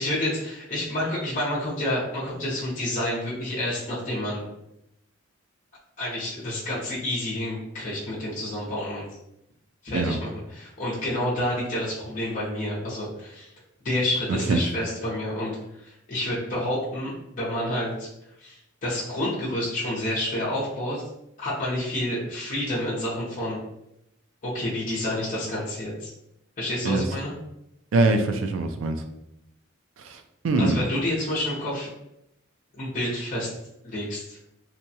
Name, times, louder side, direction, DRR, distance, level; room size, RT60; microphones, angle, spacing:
voice 1, 0.0-4.4 6.0-9.1 9.8-13.5 13.8-18.1 18.4-21.0 21.4-23.6 24.4-26.1 26.6-27.3 30.6-31.9 32.7-33.5 33.8-34.4, left 1 dB, 40° left, -8 dB, 0.7 m, -29 dB
voice 2, 27.9-29.0 30.0-30.9, right 3 dB, 75° right, 7 dB, 0.4 m, -23 dB
2.8 x 2.2 x 2.7 m, 0.83 s
head